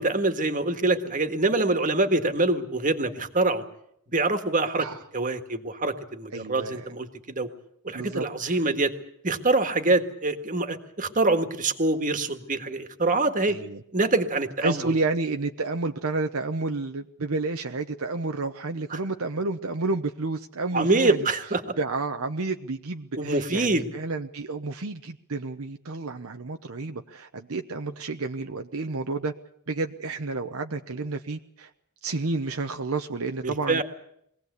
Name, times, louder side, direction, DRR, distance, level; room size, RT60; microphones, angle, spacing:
voice 1, 0.0-3.6 4.1-4.9 5.1-7.5 7.8-8.9 9.2-13.6 13.9-14.8 18.9-19.0 20.7-21.6 23.2-23.9 33.4-33.8, right 2 dB, 35° right, 7 dB, 1.8 m, -25 dB
voice 2, 6.3-6.9 7.9-8.7 13.5-13.8 14.6-21.2 21.8-29.3 29.7-31.7 32.0-33.8, right 3 dB, 70° right, 5 dB, 0.9 m, -30 dB
22.5 x 17.5 x 8.2 m, 0.73 s
head